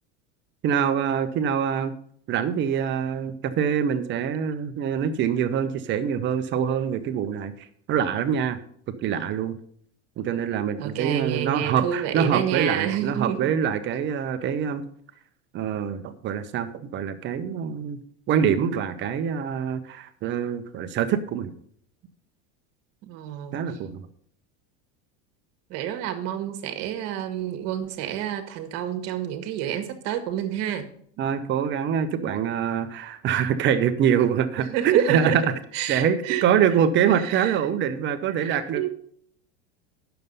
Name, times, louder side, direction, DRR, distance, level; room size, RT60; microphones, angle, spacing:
voice 1, 0.6-1.9 2.3-7.5 7.9-8.6 9.0-9.6 10.2-14.8 15.5-18.0 18.3-21.5 23.5-24.1 31.2-35.4 35.9-38.9, right 8 dB, 35° right, 0.8 m, -24 dB
voice 2, 10.8-13.5 23.0-23.6 25.7-30.9 34.6-35.5 35.7-36.5 37.1-37.6 38.4-38.9, right 10 dB, 50° right, 1.5 m, -29 dB
9.3 x 6.9 x 5.4 m
supercardioid pair, 150°, 32 cm